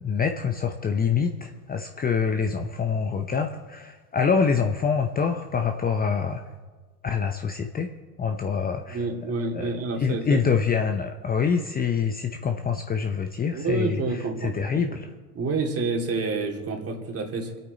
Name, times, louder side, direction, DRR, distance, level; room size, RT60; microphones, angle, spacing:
voice 1, 0.0-6.4 7.0-7.9 8.2-9.0 9.5-9.7 10.0-14.0 14.4-15.1, left 6 dB, 20° left, 5 dB, 0.8 m, -25 dB
voice 2, 8.9-10.4 13.5-15.0 15.3-17.6, right 3 dB, 30° right, 1 dB, 2.8 m, -28 dB
26.5 x 8.8 x 4.1 m, 1.4 s
hypercardioid pair, 100°, 45 cm